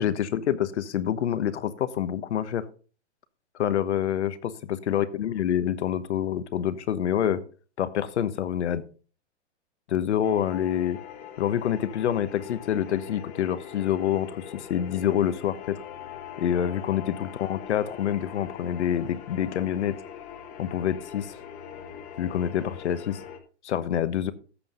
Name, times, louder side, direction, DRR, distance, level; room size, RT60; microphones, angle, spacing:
voice 1, 0.0-2.6 3.6-7.4 7.8-8.8 9.9-11.0 11.4-15.8 16.4-20.0 20.6-21.3 22.2-23.2 23.6-24.3, left 10 dB, 75° left, 13 dB, 1.3 m, -27 dB
sound 1, 10.2-23.4, left 9 dB, 20° left, 1.1 m, -42 dB
13.5 x 7.6 x 3.9 m, 0.38 s
hypercardioid pair, 160°, 35 cm